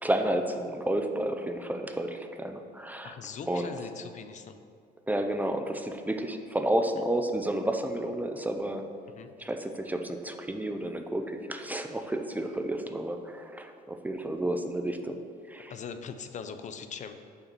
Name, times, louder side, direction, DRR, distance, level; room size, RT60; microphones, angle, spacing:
voice 1, 0.0-3.1 3.5-3.7 5.1-8.9 9.4-15.2 15.5-15.7, right 1 dB, 10° right, 6 dB, 0.6 m, -31 dB
voice 2, 3.0-4.6 9.1-9.3 15.7-17.1, left 6 dB, 45° left, 9 dB, 0.6 m, -41 dB
6.8 x 5.6 x 6.7 m, 2.3 s
cardioid pair, 110°, 17 cm